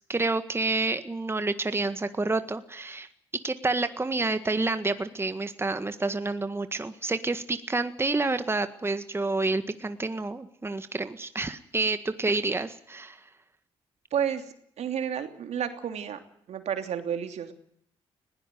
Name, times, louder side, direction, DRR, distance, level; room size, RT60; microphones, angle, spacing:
voice 1, 0.1-3.1 3.4-13.2, right 3 dB, 20° right, 10 dB, 1.6 m, -29 dB
voice 2, 14.1-14.4 14.8-16.2 16.5-17.5, right 8 dB, 65° right, 7 dB, 3.0 m, -30 dB
20.5 x 17.0 x 9.2 m, 0.68 s
supercardioid pair, 60°, 12 cm